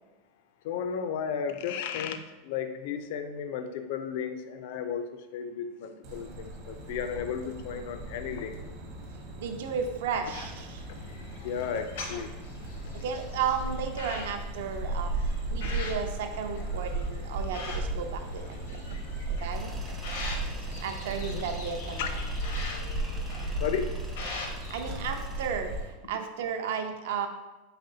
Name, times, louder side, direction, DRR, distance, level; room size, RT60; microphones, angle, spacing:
voice 1, 0.7-2.2 2.5-8.6 11.4-12.3 21.2-21.4 22.0-22.1 22.6-23.1 23.6-23.9, left 7 dB, 55° left, 8 dB, 0.3 m, -34 dB
sound 1, 6.0-25.8, right 2 dB, 50° right, 0.8 m, -36 dB
voice 2, 9.4-10.8 12.9-18.8 19.4-19.7 20.8-22.2 24.7-27.3, right 6 dB, 70° right, 6 dB, 0.4 m, -34 dB
sound 2, 10.3-25.9, left 3 dB, 80° left, 0.8 m, -42 dB
Tools, 19.5-25.5, right 2 dB, 10° right, 0.4 m, -46 dB
4.1 x 3.5 x 2.7 m, 1.1 s
supercardioid pair, 180°, 0 cm